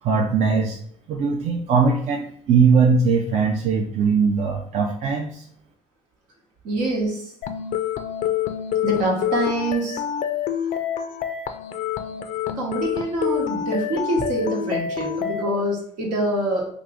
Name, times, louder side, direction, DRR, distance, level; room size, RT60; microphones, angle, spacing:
voice 1, 0.0-0.8 1.1-5.4, right 5 dB, 60° right, 1 dB, 0.5 m, -20 dB
voice 2, 6.6-7.2 8.8-10.0 12.5-16.7, right 1 dB, 85° right, -2 dB, 1.1 m, -25 dB
sound 1, 7.4-15.4, left 9 dB, 60° left, 0.4 m, -27 dB
2.9 x 2.5 x 3.5 m, 0.64 s
supercardioid pair, 70°, 14 cm